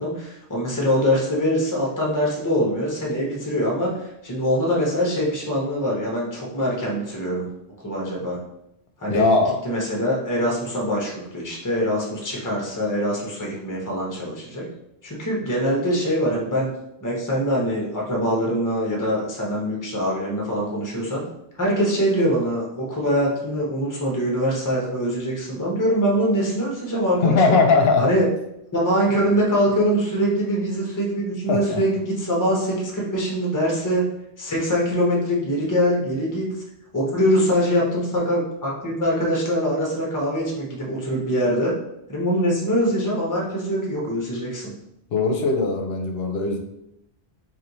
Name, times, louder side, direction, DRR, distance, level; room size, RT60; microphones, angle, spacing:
voice 1, 0.0-7.5 7.8-8.4 9.0-14.7 15.0-16.7 17.0-21.2 21.6-27.6 28.0-28.2 28.7-34.1 34.4-36.5 36.9-41.7 42.1-44.7, equal, 20° left, -3 dB, 0.9 m, -23 dB
voice 2, 9.1-9.5 27.2-28.1 31.5-31.8 45.1-46.6, left 4 dB, 70° left, 3 dB, 0.9 m, -19 dB
3.2 x 2.6 x 4.0 m, 0.81 s
omnidirectional pair, 1.1 m